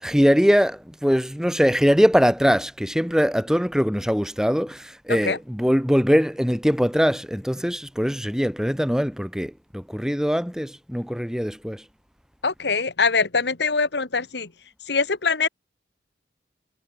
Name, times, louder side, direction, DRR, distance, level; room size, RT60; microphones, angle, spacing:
voice 1, 0.0-11.8, equal, 5° right, 3.5 m, -22 dB
voice 2, 12.4-14.5 14.9-15.5, left 4 dB, 65° left, 1.5 m, -23 dB
head